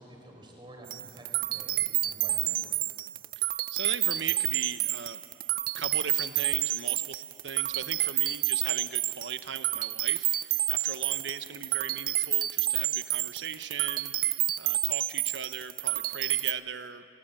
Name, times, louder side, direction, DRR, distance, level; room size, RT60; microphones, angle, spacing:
voice 1, 0.0-2.8, right 1 dB, 25° right, 1 dB, 4.7 m, -49 dB
sound 1, 0.9-16.5, right 15 dB, 50° right, 0.4 m, -29 dB
voice 2, 3.7-5.2 5.8-17.0, right 6 dB, 70° right, 11 dB, 1.0 m, -38 dB
25.5 x 19.0 x 9.0 m, 2.9 s
head